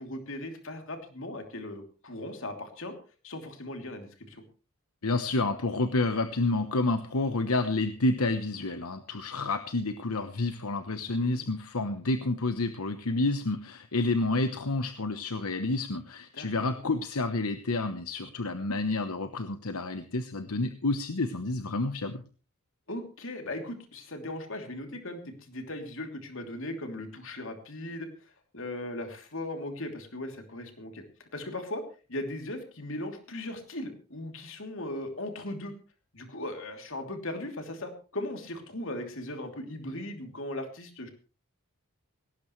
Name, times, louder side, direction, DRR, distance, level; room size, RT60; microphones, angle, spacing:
voice 1, 0.0-2.9 3.2-4.4 11.0-11.4 16.3-16.9 22.9-31.8 32.1-35.7 36.1-41.1, left 1 dB, 60° left, 5 dB, 3.0 m, -38 dB
voice 2, 5.0-22.2, left 2 dB, 80° left, 9 dB, 1.1 m, -29 dB
18.5 x 17.5 x 3.2 m, 0.35 s
head